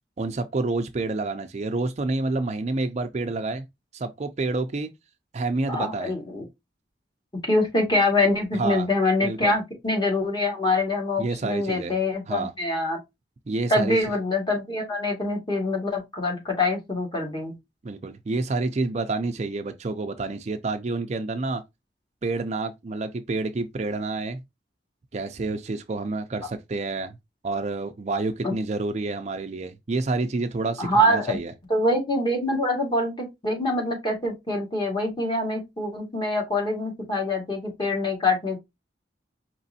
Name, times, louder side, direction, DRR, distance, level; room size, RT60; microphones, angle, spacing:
voice 1, 0.2-3.6 3.9-4.9 5.3-6.1 8.5-8.9 9.2-9.5 11.2-12.0 12.3-12.5 13.5-14.0 17.8-21.6 22.2-24.4 25.1-27.2 27.4-31.5, right 3 dB, 40° right, 0.4 m, -28 dB
voice 2, 5.7-6.4 7.5-13.0 13.7-17.5 28.4-28.5 30.8-31.4 31.7-38.6, left 1 dB, 25° left, 1.6 m, -25 dB
5.1 x 3.1 x 2.7 m
head